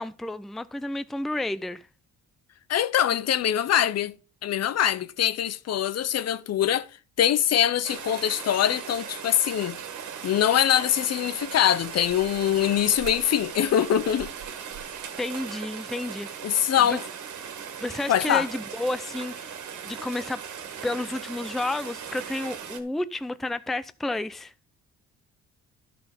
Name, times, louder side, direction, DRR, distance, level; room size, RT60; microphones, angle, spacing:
voice 1, 0.0-1.8 15.2-16.4 16.9-17.0 17.8-19.5 19.8-20.4 20.8-24.5, left 2 dB, ahead, 0.4 m, -31 dB
voice 2, 2.7-4.1 4.4-6.9 7.2-9.8 10.2-14.3 16.4-17.0 18.1-18.5, left 10 dB, 55° left, 0.7 m, -23 dB
Rain, 7.8-22.8, right 7 dB, 75° right, 1.9 m, -38 dB
11.0 x 6.0 x 5.1 m
cardioid pair, 90°, 30 cm